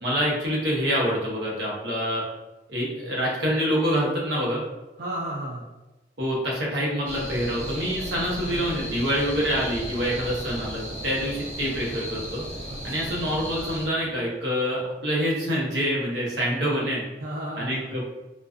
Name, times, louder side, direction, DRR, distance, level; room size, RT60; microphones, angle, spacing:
voice 1, 0.0-2.2 2.7-4.6 6.2-12.4 12.8-17.0 17.6-18.0, equal, 80° right, -4 dB, 0.8 m, -26 dB
voice 2, 5.0-5.7 8.4-8.8 12.7-12.9 17.2-18.0, right 1 dB, 60° right, -5 dB, 0.4 m, -34 dB
sound 1, 7.0-13.9, equal, 10° left, 0.9 m, -35 dB
2.3 x 2.3 x 2.4 m, 1.1 s
head